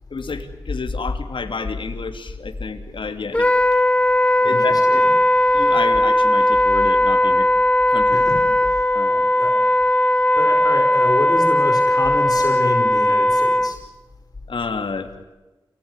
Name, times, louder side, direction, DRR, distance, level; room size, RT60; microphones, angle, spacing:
voice 1, 0.1-3.5 4.4-5.0 5.5-7.5 7.9-8.3 8.6-9.3 14.5-15.1, left 4 dB, 60° left, 6 dB, 2.8 m, -30 dB
Wind instrument woodwind instrument, 3.3-13.8, left 1 dB, 15° left, 1.1 m, -17 dB
voice 2, 4.4-4.8 8.1-8.8 9.4-9.6 10.3-13.8, left 2 dB, 45° left, 4 dB, 5.0 m, -28 dB
28.5 x 18.5 x 9.9 m, 1.1 s
wide cardioid pair, 100°, 9 cm